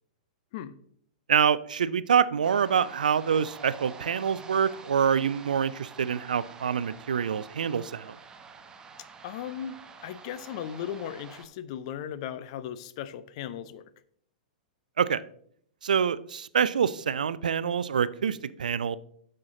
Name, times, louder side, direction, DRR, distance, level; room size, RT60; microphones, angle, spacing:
voice 1, 1.3-8.2 15.0-15.2 15.8-19.0, right 7 dB, 70° right, 18 dB, 0.4 m, -26 dB
sound 1, 2.4-11.5, right 5 dB, 15° right, 0.8 m, -47 dB
voice 2, 9.2-13.8, left 9 dB, 45° left, 14 dB, 0.6 m, -37 dB
9.5 x 6.6 x 3.7 m, 0.64 s
figure-of-eight pair, 105°, 5 cm